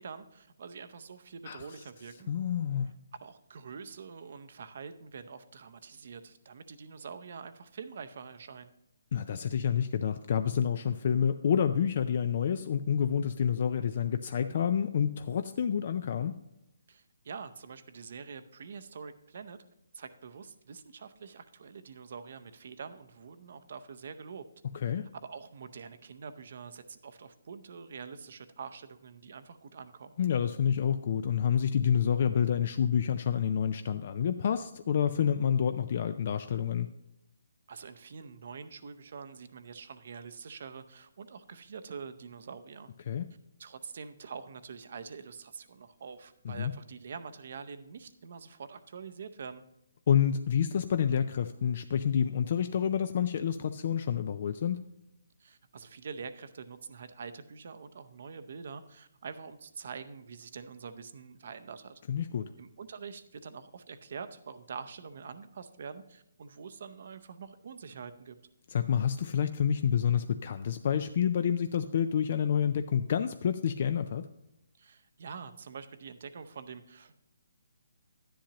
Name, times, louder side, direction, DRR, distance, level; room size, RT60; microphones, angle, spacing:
voice 1, 0.0-2.3 3.2-8.7 16.9-19.6 19.9-24.4 24.8-24.9 25.2-30.2 37.7-42.9 43.6-49.6 55.4-61.9 62.6-68.4 74.8-77.1, right 5 dB, 40° right, 11 dB, 0.6 m, -45 dB
voice 2, 2.3-2.9 9.1-16.4 24.7-25.1 30.2-36.9 43.1-43.3 46.4-46.7 50.1-54.8 62.1-62.5 68.7-74.3, left 8 dB, 35° left, 10 dB, 0.3 m, -28 dB
11.5 x 10.0 x 2.9 m, 0.85 s
hypercardioid pair, 175°, 0 cm